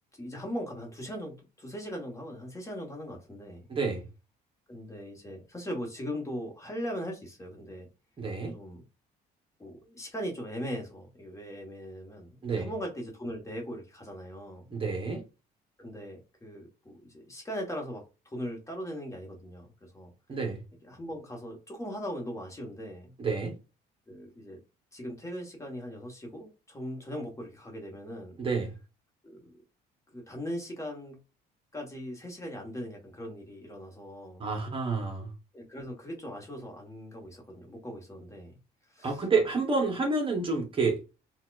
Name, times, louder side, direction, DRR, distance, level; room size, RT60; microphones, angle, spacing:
voice 1, 0.1-3.7 4.7-7.9 8.5-8.8 9.6-14.7 15.8-20.1 20.8-23.1 24.1-24.6 24.9-28.4 29.2-29.5 30.1-31.2 31.7-34.5 35.5-38.6 38.9-39.3, equal, 20° left, 1.1 m, -39 dB
voice 2, 3.7-4.0 8.2-8.5 12.4-12.7 14.7-15.2 20.3-20.6 23.2-23.5 28.4-28.7 34.4-35.3 39.0-41.0, right 4 dB, 30° right, 0.9 m, -29 dB
4.1 x 2.3 x 2.3 m
cardioid pair, 110°, 17 cm